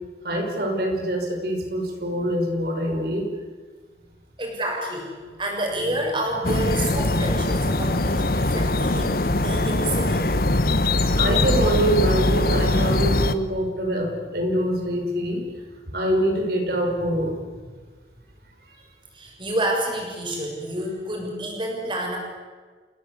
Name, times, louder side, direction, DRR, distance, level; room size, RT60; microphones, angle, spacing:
voice 1, 0.2-3.3 11.2-15.4 15.9-17.4, right 1 dB, 55° right, 2 dB, 5.6 m, -24 dB
voice 2, 4.4-10.2 19.1-22.2, right 1 dB, 25° right, 0 dB, 7.1 m, -29 dB
sound 1, 6.4-13.3, left 2 dB, 55° left, 1.2 m, -22 dB
29.0 x 18.5 x 8.4 m, 1.4 s
head